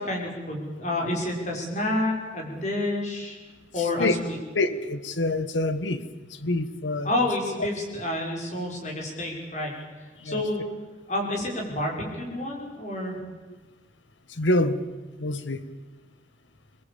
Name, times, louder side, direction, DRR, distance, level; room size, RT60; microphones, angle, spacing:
voice 1, 0.0-3.4 3.7-4.2 7.0-9.7 10.2-10.6 11.1-13.2, left 1 dB, 40° left, 5.8 m, -29 dB
voice 2, 3.8-4.2 4.5-7.1 7.6-7.7 10.2-10.4 14.3-14.8 15.2-15.7, left 2 dB, 80° left, 1.6 m, -27 dB
24.5 x 21.0 x 8.7 m
head